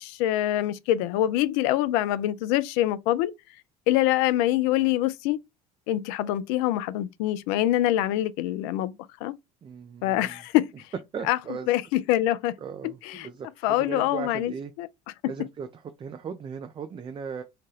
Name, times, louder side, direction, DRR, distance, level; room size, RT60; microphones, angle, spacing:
voice 1, 0.0-3.3 3.9-5.4 5.9-9.0 9.2-9.3 10.0-10.9 11.2-11.4 11.7-12.5 12.8-13.3 13.6-14.5 14.8-14.9, left 14 dB, 65° left, 0.4 m, -25 dB
voice 2, 9.6-10.4 11.1-11.7 12.6-14.7 15.2-17.4, right 6 dB, 25° right, 0.4 m, -37 dB
2.8 x 2.2 x 3.1 m
hypercardioid pair, 65°, 20 cm